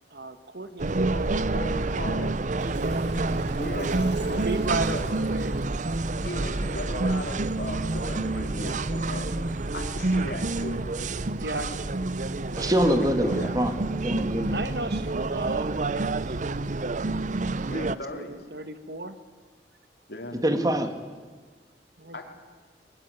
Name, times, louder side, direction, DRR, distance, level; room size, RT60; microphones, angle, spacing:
voice 1, 0.1-1.4 2.7-5.6 9.2-9.7 11.4-12.0 14.5-16.8 18.1-19.2 22.0-22.2, right 2 dB, 65° right, 10 dB, 1.6 m, -35 dB
sound 1, 0.8-18.0, right 2 dB, 45° right, 0.7 m, -28 dB
voice 2, 1.5-2.4 3.6-5.2 6.2-9.3 9.7-10.8 13.2-13.5 17.7-18.4 20.1-20.4 22.1-22.2, left 1 dB, 70° left, 3 dB, 4.0 m, -37 dB
Boom, 2.6-7.8, right 1 dB, 85° right, 2.8 m, -42 dB
voice 3, 12.6-13.8 14.0-14.6 20.4-20.9, equal, 20° right, 7 dB, 2.0 m, -24 dB
22.0 x 22.0 x 9.1 m, 1.4 s
head